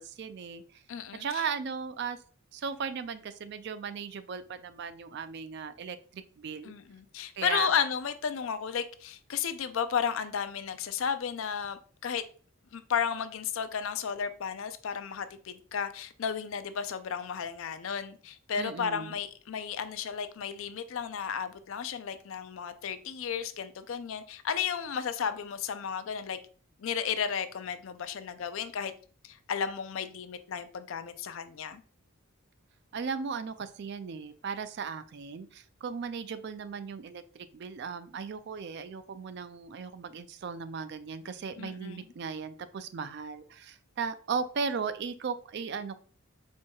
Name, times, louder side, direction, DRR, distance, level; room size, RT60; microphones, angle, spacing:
voice 1, 0.0-0.8 1.2-2.2 2.5-6.7 7.4-7.7 18.6-19.2 32.9-46.0, right 5 dB, 50° right, 0.3 m, -37 dB
voice 2, 0.9-1.4 6.6-12.2 12.7-26.4 26.8-28.9 29.2-31.8 41.6-42.0, left 7 dB, 65° left, 0.4 m, -33 dB
4.5 x 4.4 x 2.3 m
head